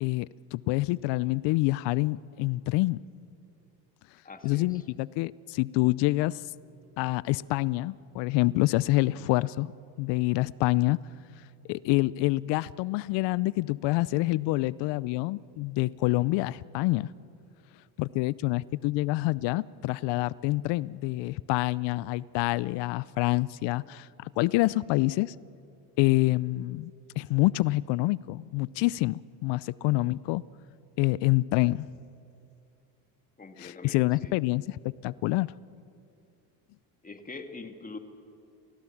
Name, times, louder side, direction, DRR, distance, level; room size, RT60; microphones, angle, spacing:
voice 1, 0.0-3.0 4.4-6.4 7.0-9.7 10.0-11.0 11.7-17.1 18.0-25.3 26.0-26.9 27.2-30.4 31.0-31.9 33.6-35.5, left 20 dB, 65° left, 22 dB, 0.6 m, -27 dB
voice 2, 4.2-4.8 33.4-34.3 37.0-38.0, left 3 dB, 20° left, 6 dB, 2.1 m, -44 dB
28.0 x 17.5 x 7.2 m, 2.6 s
supercardioid pair, 85°, 45 cm